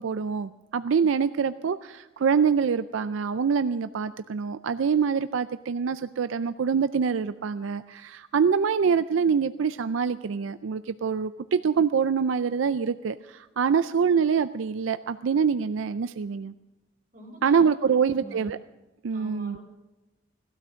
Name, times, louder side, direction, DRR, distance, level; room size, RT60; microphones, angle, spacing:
voice 1, 0.0-16.5 17.4-18.6 19.0-19.6, right 6 dB, 85° right, 12 dB, 0.4 m, -25 dB
voice 2, 17.1-17.6 17.8-18.5 19.1-19.6, right 2 dB, 40° right, -2 dB, 5.3 m, -43 dB
18.0 x 12.5 x 6.3 m, 1.0 s
head